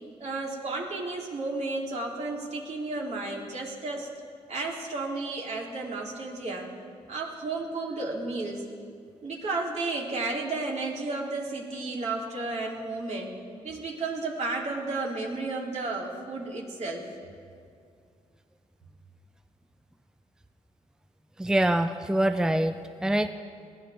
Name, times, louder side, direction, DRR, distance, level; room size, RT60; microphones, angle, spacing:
voice 1, 0.2-4.1 4.5-6.7 7.1-8.6 9.2-13.4 13.6-17.1, right 3 dB, 60° right, -2 dB, 3.1 m, -32 dB
voice 2, 21.4-23.3, right 1 dB, 5° right, 9 dB, 0.6 m, -25 dB
21.5 x 17.0 x 3.5 m, 2.2 s
cardioid pair, 85°, 13 cm